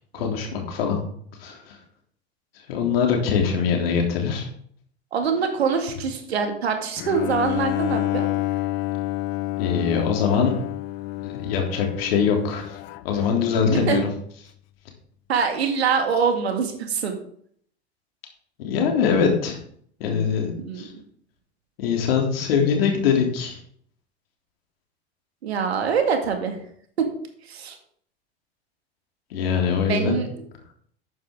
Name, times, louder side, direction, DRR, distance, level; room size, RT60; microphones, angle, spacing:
voice 1, 0.1-1.0 1.4-1.8 2.7-4.5 9.6-10.6 11.2-12.8 13.0-14.0 18.6-19.6 20.0-20.9 21.8-23.6 29.3-30.2, left 6 dB, 60° left, 1 dB, 3.2 m, -23 dB
voice 2, 5.1-8.3 13.7-14.0 15.3-17.2 20.6-20.9 25.4-26.6 27.4-27.8 29.8-30.3, right 6 dB, 70° right, 5 dB, 2.3 m, -24 dB
Bowed string instrument, 7.0-14.0, left 17 dB, 35° left, 0.7 m, -29 dB
12.0 x 9.2 x 3.8 m, 0.63 s
figure-of-eight pair, 80°, 33 cm